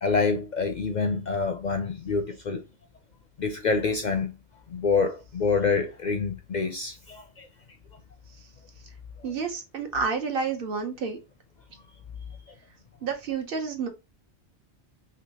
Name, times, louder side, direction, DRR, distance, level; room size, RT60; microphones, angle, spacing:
voice 1, 0.0-2.6 3.4-4.3 4.7-7.5, left 4 dB, 55° left, 0.5 m, -26 dB
voice 2, 9.2-11.2 13.0-13.9, right 5 dB, 60° right, 0.9 m, -29 dB
3.4 x 3.0 x 2.8 m
omnidirectional pair, 1.1 m